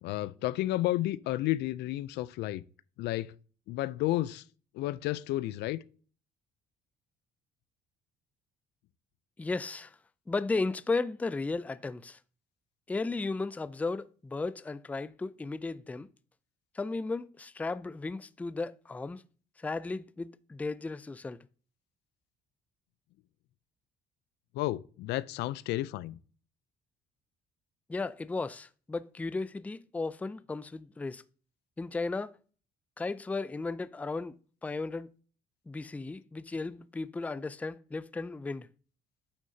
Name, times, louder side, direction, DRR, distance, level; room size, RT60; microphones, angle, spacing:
voice 1, 0.0-2.6 3.0-3.3 3.7-4.4 4.7-5.8 24.5-26.2, left 16 dB, 80° left, 0.4 m, -31 dB
voice 2, 9.4-10.0 10.3-12.2 12.9-16.1 16.7-19.2 19.6-21.4 27.9-31.2 31.8-32.3 33.0-34.3 34.6-35.1 35.7-38.7, left 3 dB, 10° left, 0.3 m, -35 dB
9.3 x 6.3 x 2.7 m
cardioid pair, 110°, 17 cm